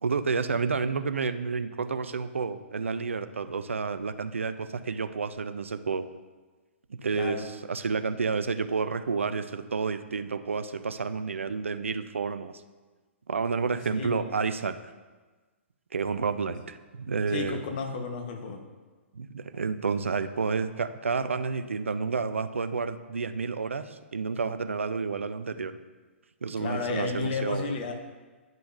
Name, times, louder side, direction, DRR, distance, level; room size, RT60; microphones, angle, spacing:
voice 1, 0.0-6.1 6.9-12.5 13.3-14.8 15.9-17.6 19.1-25.8 26.4-27.8, right 5 dB, 75° right, 11 dB, 0.4 m, -30 dB
voice 2, 7.1-7.5 13.9-14.2 17.3-18.6 26.6-27.9, left 4 dB, 45° left, 4 dB, 1.0 m, -32 dB
10.5 x 5.6 x 2.5 m, 1.3 s
figure-of-eight pair, 115°, 7 cm